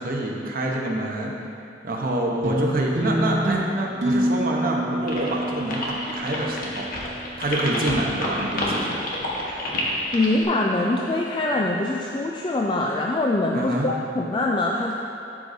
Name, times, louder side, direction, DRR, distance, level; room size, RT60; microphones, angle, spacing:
voice 1, 0.0-1.3 1.8-6.9 7.4-9.0 13.5-13.9, right 1 dB, 55° right, -1 dB, 0.9 m, -26 dB
sound 1, 2.4-7.1, right 1 dB, 80° right, 1.0 m, -27 dB
sound 2, 5.1-10.4, left 1 dB, 55° left, 1.2 m, -29 dB
voice 2, 10.1-14.9, left 2 dB, 25° left, -2 dB, 0.3 m, -23 dB
12.0 x 4.9 x 2.7 m, 2.7 s
head